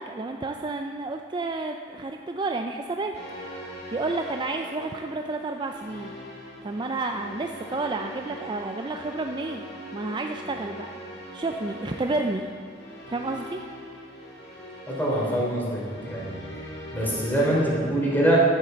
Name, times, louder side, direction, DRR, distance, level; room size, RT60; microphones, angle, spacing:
voice 1, 0.0-3.2 3.9-6.1 6.6-9.6 9.9-10.9 11.3-12.5 13.1-13.6, right 3 dB, 25° right, 4 dB, 0.4 m, -30 dB
sound 1, 3.1-17.7, equal, 60° left, 2.5 m, -41 dB
voice 2, 14.9-16.4 16.9-18.4, right 1 dB, 10° left, -5 dB, 3.3 m, -24 dB
11.0 x 8.2 x 6.8 m, 2.2 s
head